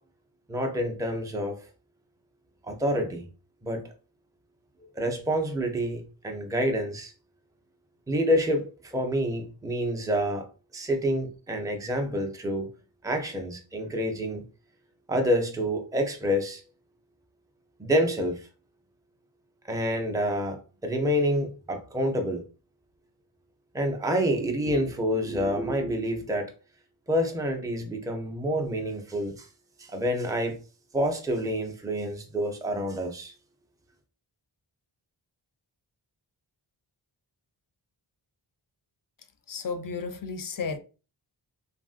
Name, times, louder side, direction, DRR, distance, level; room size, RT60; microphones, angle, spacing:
voice 1, 0.5-1.6 2.6-3.2 3.6-3.9 4.9-7.1 8.1-10.5 10.7-12.7 13.0-14.4 15.1-16.6 17.8-18.5 19.7-22.4 23.7-26.5 27.1-29.5 29.8-30.6 30.9-33.3, equal, 5° right, 0.6 m, -28 dB
voice 2, 39.5-40.8, left 5 dB, 45° left, 0.5 m, -33 dB
3.1 x 2.5 x 2.4 m
cardioid pair, 45°, 48 cm